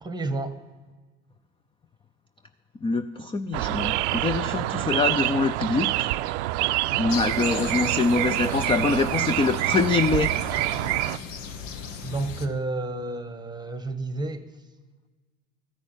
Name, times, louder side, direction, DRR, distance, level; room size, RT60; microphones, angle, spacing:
voice 1, 0.0-0.6 12.0-14.5, right 2 dB, 10° right, 11 dB, 1.2 m, -30 dB
voice 2, 2.8-6.1 6.9-10.3, left 4 dB, 15° left, 11 dB, 0.5 m, -24 dB
sound 1, 3.5-11.2, right 17 dB, 70° right, 0.5 m, -26 dB
sound 2, 7.1-12.5, left 6 dB, 80° left, 1.1 m, -37 dB
13.5 x 6.2 x 8.9 m, 1.4 s
hypercardioid pair, 85°, 36 cm